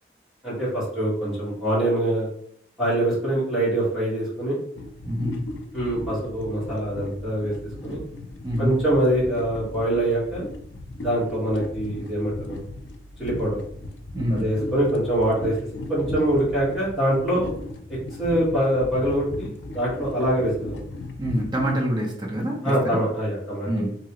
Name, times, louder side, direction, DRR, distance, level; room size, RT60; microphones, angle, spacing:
voice 1, 0.4-2.3 2.8-4.6 5.7-7.5 7.8-8.0 8.6-10.5 11.0-12.6 13.2-13.6 14.3-15.5 15.9-17.5 17.9-20.8 22.6-23.9, right 1 dB, ahead, -10 dB, 1.2 m, -24 dB
sound 1, 4.7-21.8, left 2 dB, 80° left, 0.5 m, -36 dB
voice 2, 5.0-5.5 7.9-8.0 8.4-8.8 14.1-14.5 21.2-23.0 23.7-23.9, equal, 25° right, -2 dB, 0.7 m, -26 dB
3.0 x 2.7 x 2.9 m, 0.63 s
head